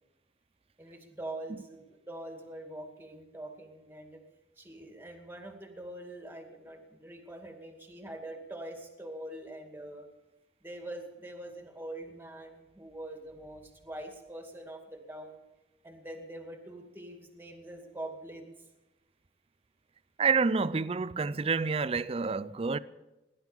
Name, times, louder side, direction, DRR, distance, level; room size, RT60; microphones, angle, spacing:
voice 1, 0.8-4.2 4.6-10.1 10.6-15.4 15.8-18.5, right 1 dB, 10° right, 2.2 m, -44 dB
voice 2, 20.2-22.8, right 4 dB, 35° right, 0.5 m, -28 dB
18.0 x 11.0 x 7.2 m
head